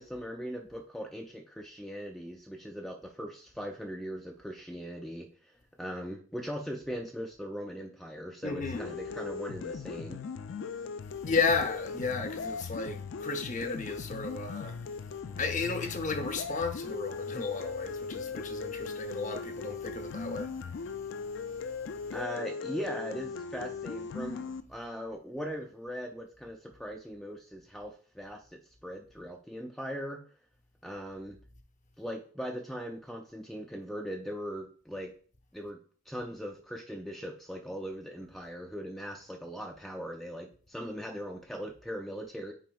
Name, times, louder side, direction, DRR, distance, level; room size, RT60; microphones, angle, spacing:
voice 1, 0.0-10.2 22.1-30.2 30.8-31.4 32.0-35.1 35.5-35.8 36.1-42.5, equal, ahead, 0.4 m, -40 dB
voice 2, 8.4-8.9 11.2-14.7 15.4-20.5, left 4 dB, 40° left, 0.7 m, -33 dB
sound 1, 8.6-24.6, left 5 dB, 65° left, 0.4 m, -39 dB
9.1 x 4.5 x 2.3 m
head